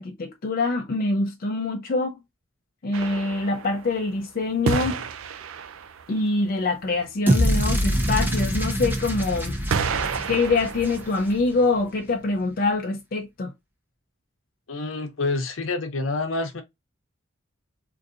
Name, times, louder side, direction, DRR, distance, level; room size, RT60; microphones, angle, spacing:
voice 1, 0.0-2.2 2.8-5.0 6.1-9.6 10.3-13.5, left 3 dB, 45° left, 0.5 m, -25 dB
sound 1, 2.9-4.1 4.6-6.2 8.5-8.6 9.7-11.3, right 5 dB, 75° right, 0.4 m, -30 dB
sound 2, 7.3-11.5, equal, 10° right, 0.7 m, -25 dB
voice 2, 14.7-16.6, left 3 dB, 70° left, 0.8 m, -27 dB
3.9 x 2.6 x 2.5 m
head